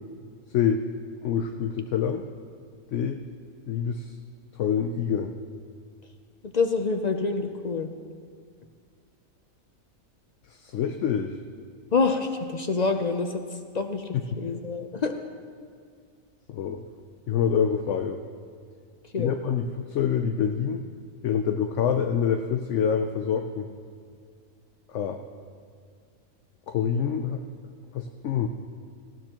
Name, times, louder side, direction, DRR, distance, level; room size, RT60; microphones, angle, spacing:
voice 1, 0.5-0.9 1.2-2.2 2.9-3.2 3.7-4.2 4.6-5.3 10.5-11.4 16.5-16.8 17.3-18.2 19.2-20.9 21.2-23.7 24.9-25.2 26.7-27.4 27.9-28.5, left 7 dB, 65° left, 5 dB, 0.9 m, -26 dB
voice 2, 6.4-7.9 11.9-13.4 13.7-14.1 14.4-15.1 19.1-19.3, left 4 dB, 50° left, 6 dB, 0.5 m, -26 dB
18.5 x 15.0 x 3.0 m, 2.1 s
omnidirectional pair, 1.5 m